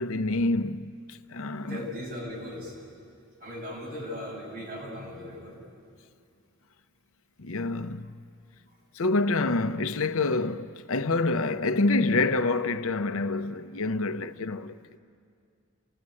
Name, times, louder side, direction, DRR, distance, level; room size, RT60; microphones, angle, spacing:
voice 1, 0.0-1.8 7.4-8.2 8.9-15.0, left 3 dB, 90° left, 0.8 m, -27 dB
voice 2, 1.4-2.9 3.4-5.6, left 1 dB, 45° right, 7.5 m, -38 dB
29.0 x 16.0 x 9.8 m
head